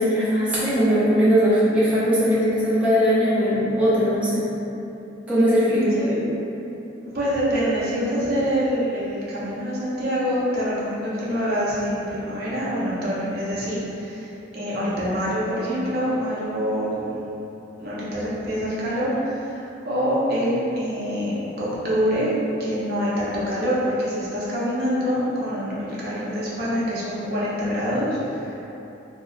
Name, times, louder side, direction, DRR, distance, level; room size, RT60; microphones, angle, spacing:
voice 1, 0.0-4.5 5.3-6.3, equal, 5° right, -11 dB, 0.6 m, -20 dB
voice 2, 5.7-6.2 7.1-17.1 17.8-22.3 22.6-28.6, equal, 55° right, -8 dB, 0.7 m, -25 dB
2.9 x 2.1 x 3.7 m, 2.9 s
head